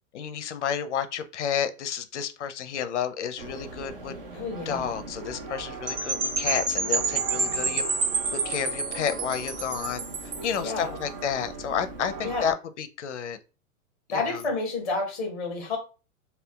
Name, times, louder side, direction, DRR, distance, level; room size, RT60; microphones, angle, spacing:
voice 1, 0.1-4.1 4.7-7.8 8.3-10.0 10.4-13.4 14.1-14.4, left 8 dB, 55° left, 0.5 m, -31 dB
sound 1, 3.4-12.5, right 3 dB, 40° right, 0.4 m, -39 dB
voice 2, 4.3-4.9 10.5-11.0 12.2-12.5 14.1-15.8, left 3 dB, ahead, 0.7 m, -30 dB
Percussion / Wind chime, 5.9-10.6, right 4 dB, 65° right, 1.3 m, -28 dB
2.3 x 2.3 x 3.6 m
hypercardioid pair, 175°, 43 cm